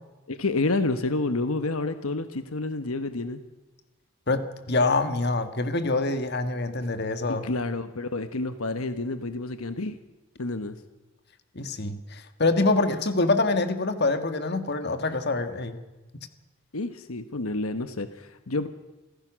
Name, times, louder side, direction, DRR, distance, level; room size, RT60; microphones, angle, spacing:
voice 1, 0.3-3.4 7.3-10.0 10.4-10.8 16.7-18.7, left 2 dB, 85° left, 10 dB, 1.2 m, -29 dB
voice 2, 4.7-7.5 11.5-15.8, left 3 dB, 50° left, 9 dB, 1.7 m, -25 dB
27.5 x 16.0 x 6.3 m, 1.1 s
head